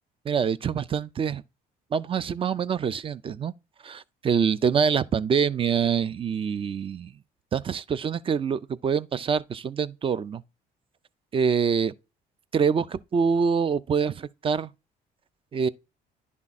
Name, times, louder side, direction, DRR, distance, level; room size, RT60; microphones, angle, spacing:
voice 1, 0.3-1.4 1.9-3.5 3.8-7.1 7.5-10.4 11.3-11.9 12.5-14.7 15.5-15.7, right 6 dB, 30° right, 0.5 m, -25 dB
11.0 x 3.6 x 4.1 m
cardioid pair, 110°, 17 cm